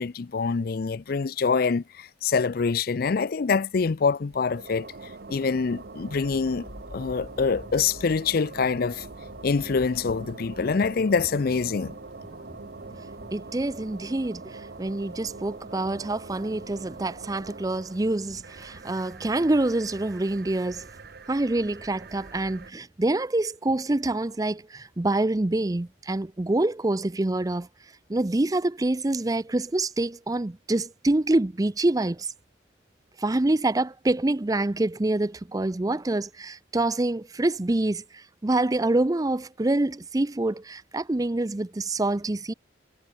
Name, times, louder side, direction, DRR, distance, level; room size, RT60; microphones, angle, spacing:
voice 1, 0.0-4.9 5.3-6.6 6.9-9.1 9.4-11.9, left 5 dB, 55° left, 0.5 m, -25 dB
sound 1, 4.3-22.7, right 3 dB, 55° right, 0.9 m, -43 dB
sound 2, 5.7-14.4, left 1 dB, 30° left, 1.7 m, -48 dB
voice 2, 13.3-20.9 21.3-27.7 28.1-32.3 33.2-42.5, right 2 dB, 20° right, 0.5 m, -26 dB
head